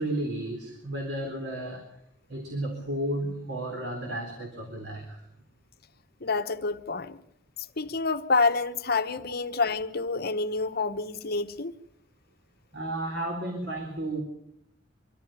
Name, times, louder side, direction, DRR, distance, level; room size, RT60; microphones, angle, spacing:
voice 1, 0.0-2.0 2.3-5.3 12.7-14.2, right 1 dB, 70° right, 3.7 m, -33 dB
voice 2, 6.2-7.2 7.8-11.7, left 4 dB, 55° left, 1.1 m, -28 dB
24.5 x 14.0 x 9.0 m
head